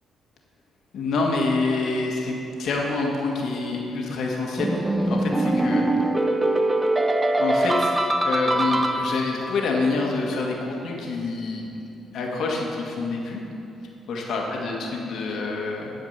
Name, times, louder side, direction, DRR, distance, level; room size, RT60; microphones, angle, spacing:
voice 1, 0.9-5.9 7.4-11.8 12.1-13.4 14.1-15.9, left 3 dB, 70° left, -1 dB, 1.7 m, -27 dB
sound 1, 4.6-9.5, right 1 dB, 20° right, 0.6 m, -23 dB
11.0 x 5.0 x 6.7 m, 2.9 s
cardioid pair, 90°, 0 cm